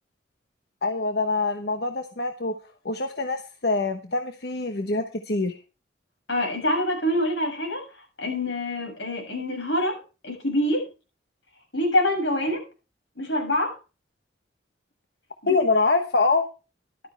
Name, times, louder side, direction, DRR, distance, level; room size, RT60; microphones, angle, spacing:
voice 1, 0.8-2.5 2.8-5.6 15.5-16.5, left 3 dB, 60° left, 1.1 m, -25 dB
voice 2, 6.3-7.8 8.2-10.9 11.7-12.6 13.2-13.8 15.4-15.6, left 1 dB, 85° left, 7.1 m, -25 dB
13.5 x 12.0 x 3.4 m
head